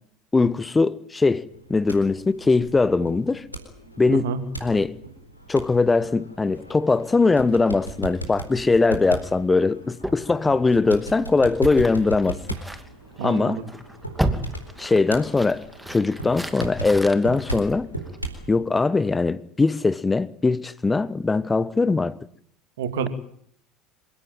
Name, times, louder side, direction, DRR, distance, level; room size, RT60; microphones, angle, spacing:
voice 1, 0.3-3.4 4.0-4.3 4.6-4.9 5.5-12.4 13.2-13.6 14.8-15.6 15.9-17.9 18.5-22.2, left 3 dB, 15° left, 1.2 m, -21 dB
sound 1, 1.5-18.5, right 2 dB, 90° left, 4.1 m, -37 dB
sound 2, 10.0-18.5, right 1 dB, ahead, 2.6 m, -34 dB
voice 2, 13.2-13.7 22.8-23.1, right 7 dB, 65° right, 2.7 m, -28 dB
27.5 x 17.0 x 9.1 m
figure-of-eight pair, 65°, 0 cm